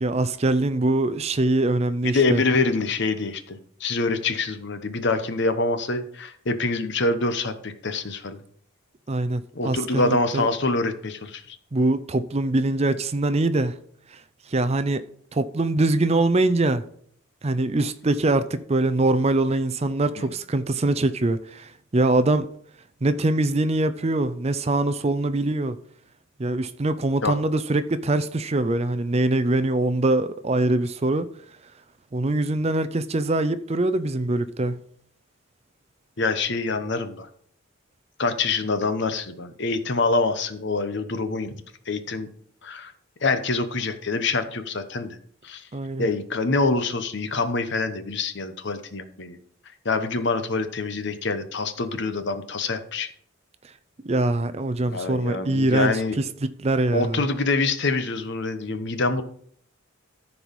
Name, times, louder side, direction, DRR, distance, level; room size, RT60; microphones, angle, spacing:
voice 1, 0.0-2.4 9.1-10.5 11.7-13.8 14.1-14.2 14.5-15.0 15.3-16.8 17.4-22.5 23.0-25.8 26.4-31.3 32.1-34.8 45.7-46.1 54.0-57.2, right 2 dB, 30° right, 0.5 m, -23 dB
voice 2, 2.0-8.4 9.5-11.6 27.2-27.3 36.2-37.3 38.2-41.6 41.9-42.3 42.6-42.9 43.2-45.2 45.4-45.7 46.0-49.4 49.8-53.1 54.9-56.2 56.9-59.2, left 3 dB, 55° left, 0.9 m, -25 dB
14.0 x 4.7 x 5.3 m
head